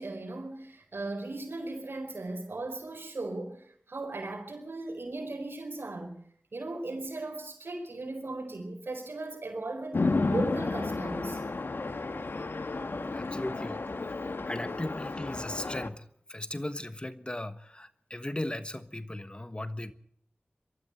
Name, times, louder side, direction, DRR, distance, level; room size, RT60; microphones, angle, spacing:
voice 1, 0.0-6.2 6.5-11.4 12.8-13.1, right 2 dB, 85° right, 4.5 m, -37 dB
Chatter / Traffic noise roadway noise / Train, 9.9-15.9, left 3 dB, 70° left, 1.3 m, -32 dB
voice 2, 13.1-19.9, left 1 dB, 25° left, 1.2 m, -38 dB
24.0 x 13.0 x 8.3 m
wide cardioid pair, 55°, 4 cm